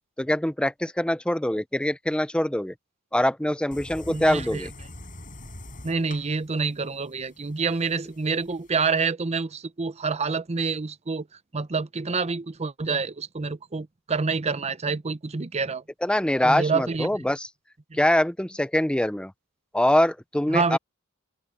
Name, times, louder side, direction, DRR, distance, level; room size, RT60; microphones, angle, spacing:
voice 1, 0.2-2.7 3.1-4.7 16.0-17.5 17.9-19.3 19.7-20.8, left 1 dB, 5° left, 0.6 m, -24 dB
sound 1, 3.7-8.7, left 1 dB, 40° left, 7.4 m, -44 dB
voice 2, 4.1-4.7 5.8-11.3 11.5-15.8 16.4-17.2 17.9-18.0 20.5-20.8, right 4 dB, 30° right, 0.7 m, -27 dB
open air
head